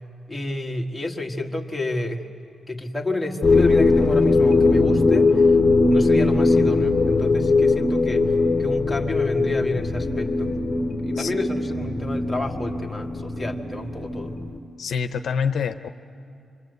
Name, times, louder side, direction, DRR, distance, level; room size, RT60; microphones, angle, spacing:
voice 1, 0.3-2.2 2.7-5.4 5.9-8.3 8.6-10.6 11.0-14.3, left 2 dB, 5° left, 0 dB, 1.6 m, -29 dB
sound 1, 3.4-14.6, left 3 dB, 30° left, 1.1 m, -20 dB
voice 2, 14.8-15.9, left 6 dB, 75° left, 8 dB, 0.7 m, -26 dB
26.5 x 25.0 x 8.0 m, 2.6 s
wide cardioid pair, 135°, 0 cm